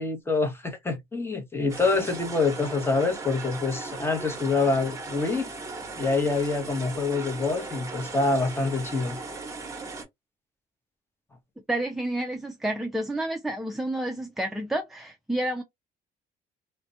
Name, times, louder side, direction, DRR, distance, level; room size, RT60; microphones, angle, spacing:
voice 1, 0.0-5.5 6.0-9.2, left 3 dB, 15° left, 0.7 m, -26 dB
sound 1, 1.7-10.0, right 3 dB, 20° right, 0.9 m, -38 dB
voice 2, 11.7-15.6, right 1 dB, ahead, 0.3 m, -30 dB
2.3 x 2.1 x 2.6 m
cardioid pair, 110°, 17 cm